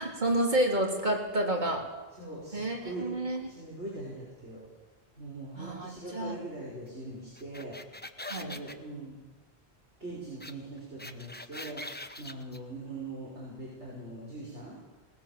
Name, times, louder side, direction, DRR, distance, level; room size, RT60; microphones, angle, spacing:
voice 1, 0.0-1.8 2.5-3.5 5.6-6.4 8.3-8.6, right 1 dB, 45° right, 0 dB, 3.4 m, -29 dB
voice 2, 2.2-4.6 5.2-7.8 8.4-9.2 10.0-14.8, right 2 dB, 90° right, -6 dB, 5.2 m, -42 dB
sound 1, 7.4-8.8 10.4-10.5 10.8-12.6, left 1 dB, 10° left, 0.8 m, -42 dB
19.0 x 18.5 x 7.8 m, 1.2 s
omnidirectional pair, 1.1 m